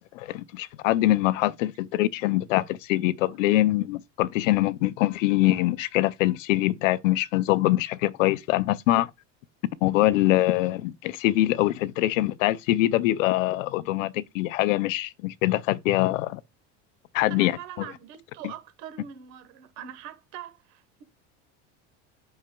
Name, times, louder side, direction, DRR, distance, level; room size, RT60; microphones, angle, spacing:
voice 1, 0.2-9.1 9.8-16.4 17.1-17.5, left 16 dB, 90° left, 0.6 m, -23 dB
voice 2, 17.3-21.0, right 10 dB, 75° right, 1.3 m, -43 dB
7.6 x 5.6 x 2.3 m
supercardioid pair, 100°, 37 cm